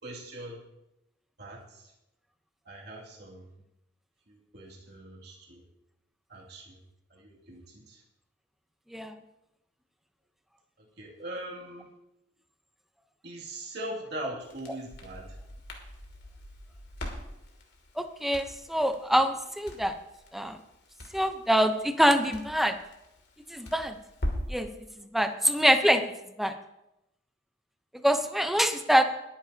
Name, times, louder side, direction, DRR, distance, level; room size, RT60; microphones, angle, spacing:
voice 1, 0.0-0.6 1.4-1.9 2.6-3.5 4.3-5.6 6.3-6.8 7.1-8.0 10.8-11.9 13.2-15.4, right 1 dB, 60° right, -2 dB, 2.4 m, -41 dB
Crackle, 14.4-24.6, left 1 dB, 65° left, 2.7 m, -41 dB
voice 2, 18.0-20.0 20.3-20.6 21.1-22.8 23.5-24.0 24.5-24.7 25.0-26.1 26.4-26.5 28.0-29.0, equal, ahead, 7 dB, 0.7 m, -25 dB
21.5 x 10.0 x 2.8 m, 0.89 s
head